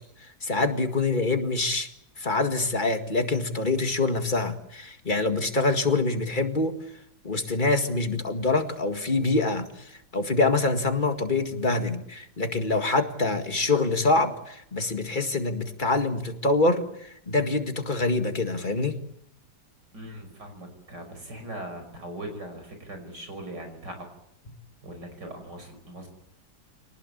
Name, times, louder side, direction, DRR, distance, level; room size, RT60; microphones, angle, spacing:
voice 1, 0.4-1.9 2.2-6.8 7.2-19.0, left 3 dB, 30° left, 6 dB, 2.0 m, -25 dB
voice 2, 19.9-24.1 24.8-26.1, right 1 dB, 85° right, 5 dB, 6.3 m, -40 dB
26.0 x 19.0 x 8.6 m, 0.77 s
omnidirectional pair, 1.8 m